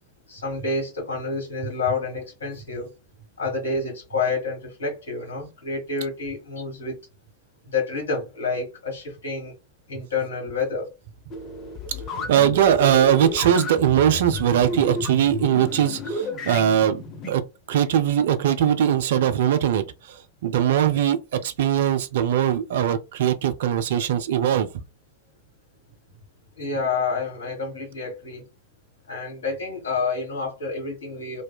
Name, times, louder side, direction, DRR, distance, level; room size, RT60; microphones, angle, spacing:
voice 1, 0.3-2.9 3.4-7.0 7.7-9.5 9.9-10.9 26.6-28.4 29.1-31.4, left 4 dB, 65° left, 1.4 m, -28 dB
sound 1, 11.3-17.3, left 2 dB, 30° left, 0.5 m, -32 dB
voice 2, 12.1-17.4 17.7-24.8, right 10 dB, 55° right, 0.3 m, -21 dB
2.6 x 2.1 x 2.2 m
figure-of-eight pair, 90°, 0 cm